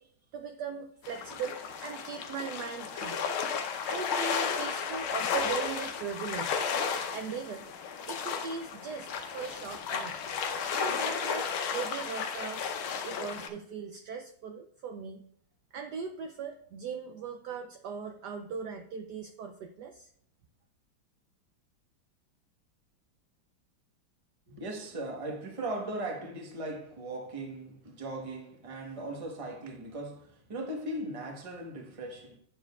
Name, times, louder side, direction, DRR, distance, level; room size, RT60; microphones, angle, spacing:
voice 1, 0.0-3.3 3.9-6.5 7.1-7.6 8.0-10.1 10.7-12.7 13.0-15.2 15.7-20.1, right 6 dB, 70° right, 1.0 m, -39 dB
sound 1, 1.0-13.5, left 6 dB, 85° left, 1.7 m, -33 dB
voice 2, 24.5-32.4, right 1 dB, 25° right, 0.9 m, -38 dB
10.5 x 6.7 x 2.4 m
omnidirectional pair, 2.2 m